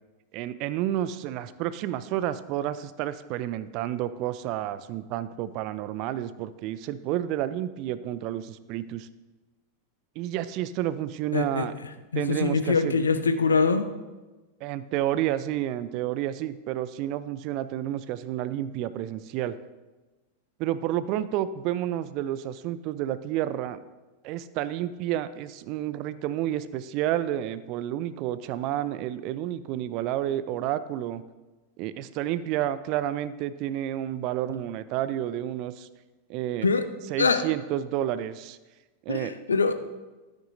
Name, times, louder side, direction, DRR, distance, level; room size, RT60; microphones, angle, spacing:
voice 1, 0.3-9.1 10.2-11.7 12.1-13.0 14.6-19.6 20.6-23.8 24.2-31.2 31.8-35.9 36.3-36.7 37.1-38.6 39.1-39.3, right 12 dB, 40° right, 15 dB, 0.4 m, -30 dB
voice 2, 11.3-13.9 36.6-36.8 37.2-37.4 39.1-39.7, left 4 dB, 75° left, 10 dB, 0.7 m, -24 dB
13.0 x 9.1 x 2.6 m, 1.2 s
figure-of-eight pair, 90°, 0 cm